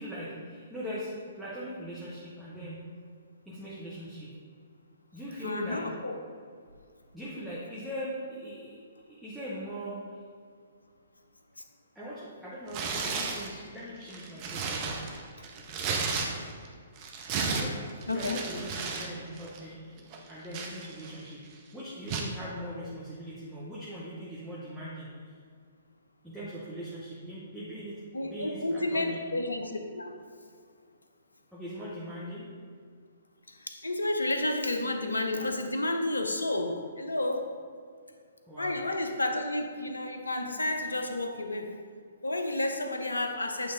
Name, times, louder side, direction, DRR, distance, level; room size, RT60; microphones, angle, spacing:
voice 1, 0.0-2.8 3.5-4.3 5.1-5.9 7.1-8.8 9.1-10.2 11.9-15.0 17.5-17.8 18.1-21.5 21.7-25.1 26.2-29.2 31.5-32.5 38.5-38.8, equal, 5° right, -9 dB, 0.9 m, -40 dB
voice 2, 5.4-6.1 18.1-18.4 28.1-30.2 33.5-37.4 38.6-41.7 42.2-43.7, left 2 dB, 80° left, 5 dB, 0.6 m, -31 dB
Tearing, 12.7-13.5 14.0-16.7 17.0-19.1 19.4-19.6 20.1-21.3 22.1-22.3, right 4 dB, 30° right, 0.7 m, -33 dB
8.0 x 3.4 x 3.9 m, 2.1 s
figure-of-eight pair, 125°, 0 cm